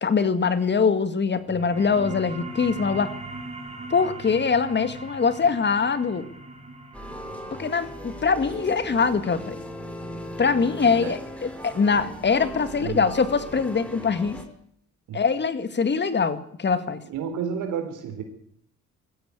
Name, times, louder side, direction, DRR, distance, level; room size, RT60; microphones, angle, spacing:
voice 1, 0.0-3.1 3.9-6.3 7.5-9.6 10.4-14.4 15.1-17.0, left 5 dB, 35° left, 12 dB, 2.1 m, -23 dB
sound 1, 1.4-12.5, right 2 dB, 20° right, 4.4 m, -41 dB
sound 2, 6.9-14.4, equal, 5° left, 5.0 m, -38 dB
voice 2, 17.1-18.2, right 7 dB, 85° right, 7 dB, 3.9 m, -30 dB
21.5 x 15.0 x 8.4 m, 0.67 s
cardioid pair, 90°, 30 cm